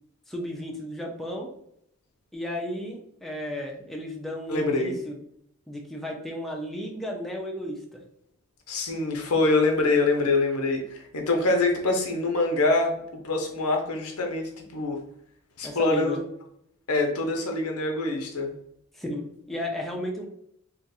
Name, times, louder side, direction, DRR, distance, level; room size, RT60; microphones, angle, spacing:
voice 1, 0.3-1.5 2.3-5.2 5.7-8.0 15.6-16.2 18.9-20.3, left 1 dB, ahead, -1 dB, 0.4 m, -34 dB
voice 2, 4.5-5.0 8.7-15.0 15.6-16.2 16.9-18.5, left 2 dB, 80° left, 2 dB, 0.8 m, -25 dB
2.4 x 2.4 x 4.1 m, 0.72 s
head